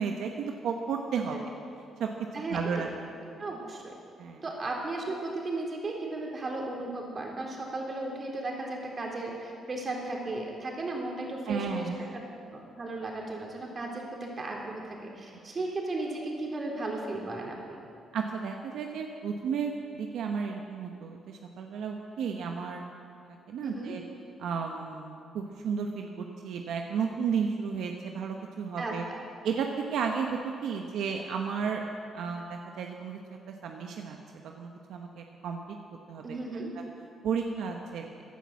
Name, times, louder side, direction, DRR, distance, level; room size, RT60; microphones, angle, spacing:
voice 1, 0.0-1.4 2.0-2.1 2.5-2.9 3.3-3.4 4.2-4.4 11.5-12.1 18.1-22.9 23.5-24.0 24.4-29.1 29.4-31.8 32.1-33.2 33.5-34.2 34.4-35.6 36.1-36.2 37.2-38.1, right 6 dB, 80° right, 2 dB, 1.0 m, -33 dB
voice 2, 3.4-3.9 4.4-17.8 23.6-23.9 28.8-29.2 36.2-36.7, right 2 dB, 35° right, -1 dB, 3.6 m, -35 dB
16.0 x 10.5 x 7.5 m, 2.5 s
cardioid pair, 90°, 0 cm